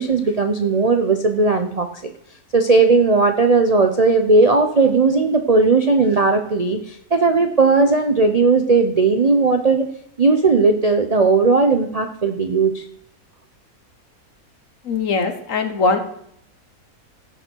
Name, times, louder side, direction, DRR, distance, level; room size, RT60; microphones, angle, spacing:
voice 1, 0.0-2.1 2.5-9.9 10.2-12.8, right 3 dB, 45° right, 6 dB, 0.5 m, -17 dB
voice 2, 14.8-16.0, left 4 dB, 60° left, 8 dB, 1.5 m, -20 dB
16.0 x 6.8 x 4.5 m, 0.70 s
omnidirectional pair, 1.6 m